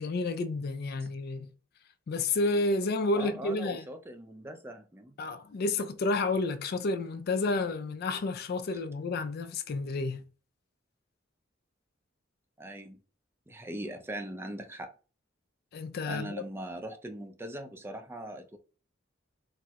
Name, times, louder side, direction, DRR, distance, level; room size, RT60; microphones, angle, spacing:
voice 1, 0.0-1.5 2.1-3.8 5.2-10.2 15.7-16.5, left 3 dB, 55° left, 0.4 m, -30 dB
voice 2, 3.1-5.1 12.6-13.0 13.5-14.9 16.1-18.6, right 1 dB, 10° right, 0.4 m, -40 dB
4.1 x 2.0 x 2.4 m
head